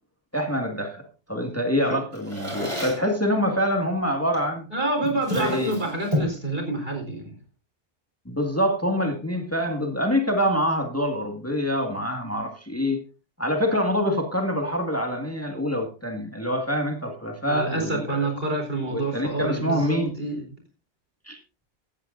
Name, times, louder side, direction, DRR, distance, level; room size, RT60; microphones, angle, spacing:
voice 1, 0.3-4.6 5.4-5.7 8.3-13.0 13.4-18.3 18.9-20.1 21.3-21.4, equal, 15° left, 2.0 m, -25 dB
Drawer open or close, 1.9-3.1 4.3-4.6 5.0-6.4, equal, 25° right, 5.3 m, -30 dB
voice 2, 4.7-7.4 17.5-20.5, right 2 dB, 60° right, 4.6 m, -28 dB
16.0 x 14.0 x 2.6 m
omnidirectional pair, 1.1 m